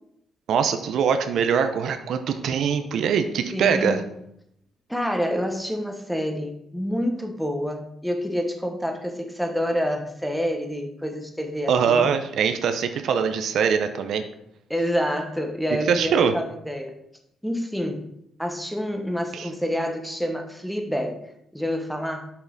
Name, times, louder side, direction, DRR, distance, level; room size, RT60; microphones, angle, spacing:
voice 1, 0.5-4.0 11.7-14.2 15.9-16.3 19.3-19.5, right 7 dB, 70° right, 8 dB, 0.6 m, -22 dB
voice 2, 3.5-4.0 4.9-12.1 14.7-17.0 17.4-18.0 18.4-22.3, equal, ahead, 4 dB, 1.1 m, -28 dB
6.5 x 5.6 x 4.0 m, 0.75 s
cardioid pair, 90°, 0 cm